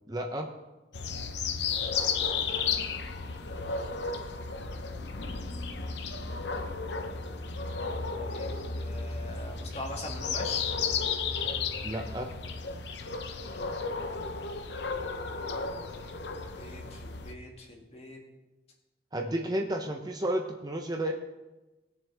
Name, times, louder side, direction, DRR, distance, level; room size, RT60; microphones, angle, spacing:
voice 1, 0.1-0.5 11.8-12.3 19.1-21.1, right 1 dB, 20° right, 3 dB, 0.8 m, -32 dB
sound 1, 0.9-17.3, left 5 dB, 70° left, 0.8 m, -33 dB
voice 2, 2.9-5.1 7.6-10.7 16.5-18.2, left 1 dB, 35° left, -1 dB, 2.2 m, -45 dB
20.0 x 7.2 x 3.5 m, 1.1 s
head